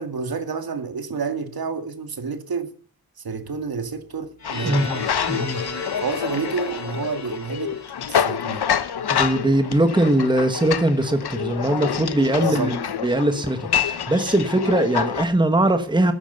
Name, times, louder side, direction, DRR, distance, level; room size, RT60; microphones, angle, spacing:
voice 1, 0.0-2.7 3.2-4.9 6.0-7.7 8.1-8.7 12.4-12.7, right 5 dB, 70° right, 2.2 m, -29 dB
sound 1, 4.4-15.2, left 8 dB, 85° left, 1.0 m, -27 dB
sound 2, 4.4-9.2, left 3 dB, 45° left, 2.7 m, -36 dB
voice 2, 4.6-5.6 9.1-16.1, right 1 dB, 10° right, 1.4 m, -21 dB
13.5 x 10.5 x 6.8 m
wide cardioid pair, 150°, 38 cm